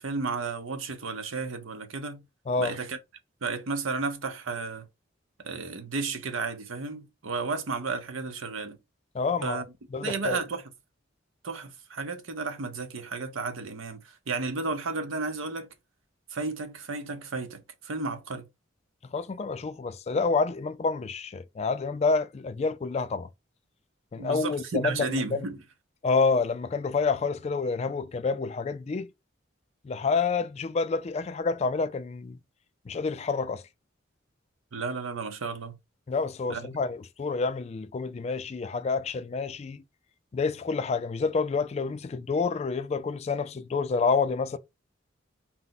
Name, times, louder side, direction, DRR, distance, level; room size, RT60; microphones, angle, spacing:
voice 1, 0.0-2.2 2.6-3.0 3.4-4.9 5.4-8.8 9.4-9.6 10.0-10.6 11.4-15.7 16.3-18.4 24.2-25.6 34.7-35.8 36.5-36.7, right 4 dB, 90° right, 0.7 m, -33 dB
voice 2, 9.1-9.6 9.9-10.4 19.0-23.3 24.1-25.5 26.0-29.1 29.8-32.4 32.9-33.6 36.1-39.8 40.3-44.6, left 4 dB, 35° left, 0.3 m, -28 dB
4.3 x 2.0 x 4.0 m
head